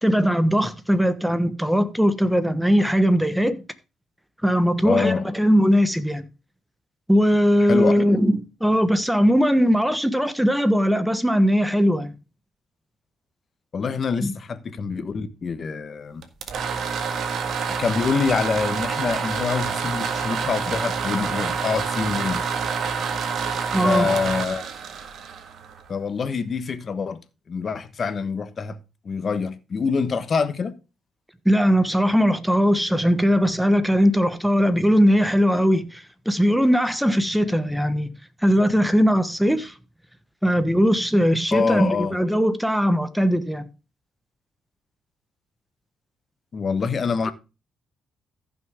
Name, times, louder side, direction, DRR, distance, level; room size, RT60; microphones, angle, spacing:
voice 1, 0.0-3.6 4.4-6.2 7.1-8.3 8.6-12.1 14.2-14.3 23.7-24.1 31.4-38.1 38.4-39.7 40.4-43.6, equal, 5° right, 1.2 m, -19 dB
voice 2, 4.8-5.3 7.7-8.0 13.7-16.2 17.7-22.4 23.8-24.7 25.9-27.2 27.5-28.8 29.0-30.7 41.5-42.2 46.5-47.3, left 5 dB, 45° left, 1.2 m, -25 dB
sound 1, 16.2-26.0, right 6 dB, 65° right, 1.7 m, -27 dB
14.5 x 6.3 x 3.6 m
cardioid pair, 90°, 0 cm